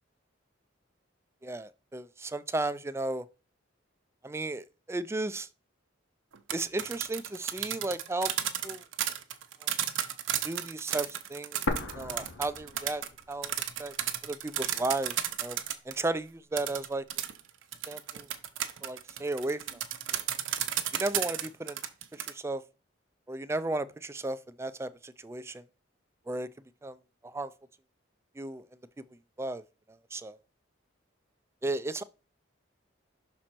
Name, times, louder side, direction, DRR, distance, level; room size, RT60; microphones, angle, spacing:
voice 1, 1.4-3.3 4.2-5.5 6.5-8.3 8.6-8.8 9.6-9.7 10.4-11.6 11.9-13.5 13.8-13.9 14.2-15.6 15.9-17.0 17.9-18.3 18.8-19.8 20.9-21.8 22.1-22.6 23.3-25.6 26.3-26.5 26.8-27.0 27.2-27.5 28.4-28.6 29.4-29.6 29.9-30.4 31.6-32.0, right 2 dB, 15° right, 0.4 m, -34 dB
sound 1, 6.3-16.0 16.6-22.3, right 11 dB, 80° right, 0.8 m, -33 dB
sound 2, 11.7-13.6 13.9-14.0 14.7-15.7, left 2 dB, 85° left, 1.1 m, -36 dB
6.2 x 4.4 x 4.3 m
head